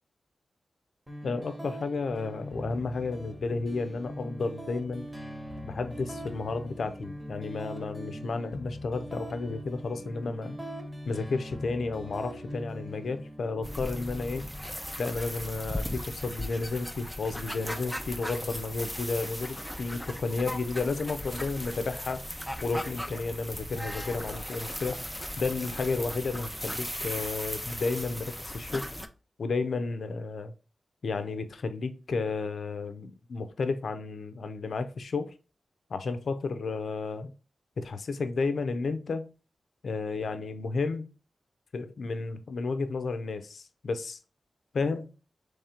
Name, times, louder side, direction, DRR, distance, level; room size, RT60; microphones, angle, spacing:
sound 1, 1.1-19.0, equal, 15° right, 1.3 m, -43 dB
voice 1, 1.2-5.1 5.6-10.6 11.1-14.4 15.0-22.2 22.6-25.0 25.4-28.9 29.4-30.5 31.0-35.3 35.9-37.3 37.8-39.2 39.8-41.0 41.7-44.2 44.7-45.1, left 3 dB, 75° left, 0.5 m, -32 dB
sound 2, 13.6-29.1, equal, ahead, 0.6 m, -37 dB
3.6 x 3.2 x 4.2 m
cardioid pair, 45°, 0 cm